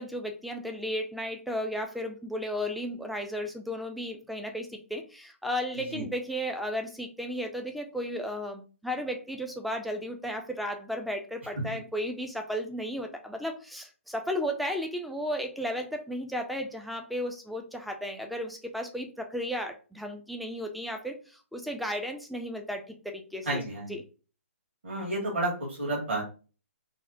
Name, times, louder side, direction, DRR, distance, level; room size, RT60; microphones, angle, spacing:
voice 1, 0.0-23.6 23.9-24.0, equal, ahead, 4 dB, 0.3 m, -34 dB
voice 2, 23.4-24.0 24.8-26.2, right 2 dB, 55° right, -1 dB, 1.7 m, -31 dB
4.1 x 2.0 x 2.7 m, 0.36 s
figure-of-eight pair, 130°, 7 cm